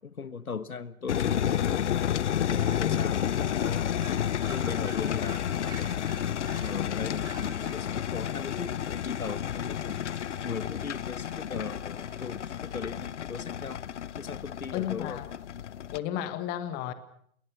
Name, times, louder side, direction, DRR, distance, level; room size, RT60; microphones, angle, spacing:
voice 1, 0.0-2.0 2.5-4.0 4.5-6.0 6.6-10.0 10.4-13.8 14.2-15.2, left 5 dB, 80° left, 15 dB, 1.5 m, -38 dB
sound 1, 1.1-16.0, left 9 dB, 55° left, 0.9 m, -31 dB
sound 2, 2.2-12.9, right 3 dB, 10° right, 5.5 m, -51 dB
voice 2, 2.8-3.2 14.7-15.3 15.9-16.9, left 11 dB, 20° left, 12 dB, 1.6 m, -33 dB
28.5 x 21.5 x 6.3 m, 0.67 s
figure-of-eight pair, 130°, 42 cm